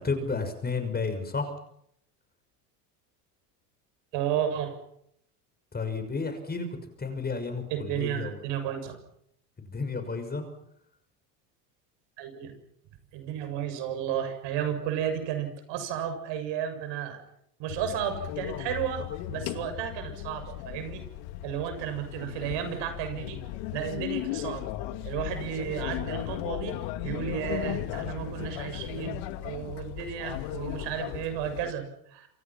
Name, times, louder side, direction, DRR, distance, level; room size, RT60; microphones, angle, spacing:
voice 1, 0.0-1.5 5.7-6.7 7.0-8.4 9.6-10.5, left 4 dB, 20° left, 8 dB, 6.3 m, -32 dB
voice 2, 4.1-4.7 7.7-9.0 12.2-12.5 13.1-17.2 17.6-21.0 21.4-23.4 23.7-24.7 25.0-31.9 32.1-32.3, right 9 dB, 60° right, 8 dB, 7.2 m, -33 dB
sound 1, 17.7-31.7, left 14 dB, 65° left, 2.5 m, -36 dB
27.5 x 27.0 x 6.0 m, 0.72 s
hypercardioid pair, 95°, 48 cm